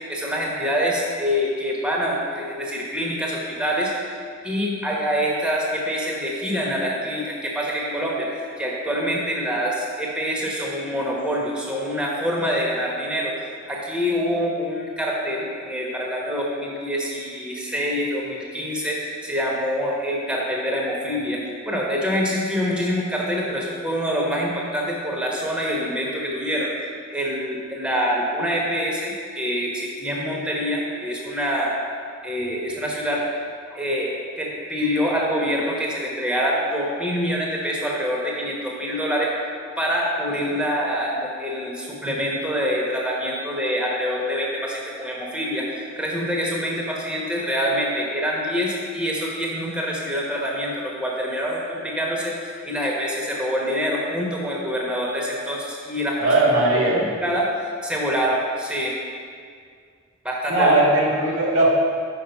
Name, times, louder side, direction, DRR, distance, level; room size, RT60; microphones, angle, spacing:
voice 1, 0.1-4.2 4.4-13.3 13.7-31.8 32.2-33.3 33.7-39.3 39.8-56.3 56.8-59.0 60.2-60.7, equal, 5° right, -3 dB, 0.9 m, -25 dB
voice 2, 56.2-57.1 60.5-61.7, right 2 dB, 85° right, -3 dB, 1.6 m, -18 dB
5.8 x 4.8 x 5.3 m, 2.1 s
head